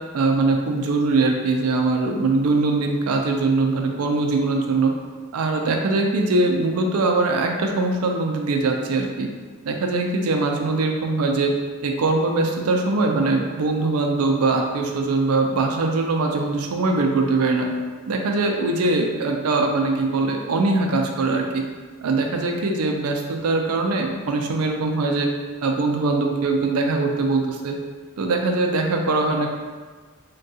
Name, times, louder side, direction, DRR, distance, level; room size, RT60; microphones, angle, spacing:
voice 1, 0.1-4.9 5.3-9.3 9.6-11.5 11.8-17.7 18.1-21.6 22.0-25.3 25.6-27.8 28.2-29.5, right 3 dB, 85° right, 3 dB, 0.4 m, -22 dB
3.5 x 2.2 x 2.7 m, 1.4 s
head